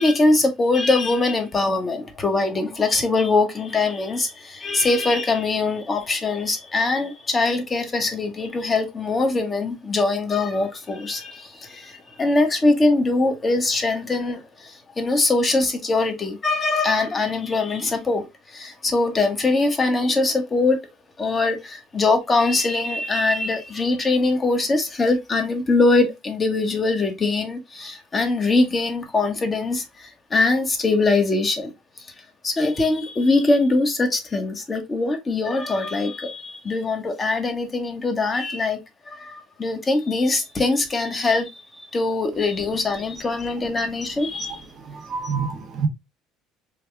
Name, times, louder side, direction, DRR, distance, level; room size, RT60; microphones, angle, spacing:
voice 1, 0.0-20.8 21.2-31.7 32.0-32.1 32.4-38.8 39.1-44.6 45.2-45.3, left 3 dB, 25° left, 1.0 m, -22 dB
voice 2, 44.8-45.9, right 5 dB, 45° right, 0.7 m, -27 dB
3.4 x 2.3 x 3.3 m
supercardioid pair, 85°, 0 cm